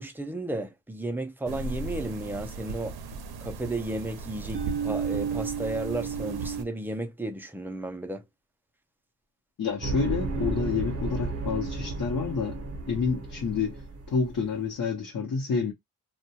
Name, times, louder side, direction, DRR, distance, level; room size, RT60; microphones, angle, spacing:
voice 1, 0.0-3.0 3.4-8.2, right 2 dB, 5° right, 0.3 m, -33 dB
sound 1, 1.5-6.6, right 6 dB, 85° right, 0.5 m, -33 dB
voice 2, 9.6-12.6 12.9-15.7, left 5 dB, 60° left, 0.7 m, -29 dB
sound 2, 9.8-14.6, right 3 dB, 40° right, 0.7 m, -33 dB
2.2 x 2.1 x 2.6 m
wide cardioid pair, 125°, 37 cm